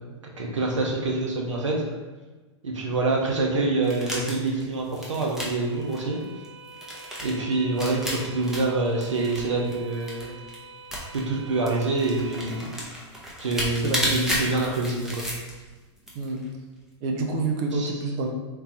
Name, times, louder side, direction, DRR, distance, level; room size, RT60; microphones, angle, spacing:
voice 1, 0.0-1.8 2.6-6.2 7.2-10.4 11.1-12.7 13.4-15.2 17.7-17.9, right 3 dB, 90° right, -1 dB, 0.7 m, -26 dB
sound 1, 3.6-12.6, right 4 dB, 75° right, 1.1 m, -47 dB
sound 2, 3.8-10.6 10.9-11.3 11.6-15.7 16.0-16.5, equal, 5° right, 0.8 m, -32 dB
voice 2, 17.0-18.3, right 3 dB, 45° right, 3 dB, 0.6 m, -27 dB
3.7 x 2.7 x 2.9 m, 1.3 s
hypercardioid pair, 115°, 15 cm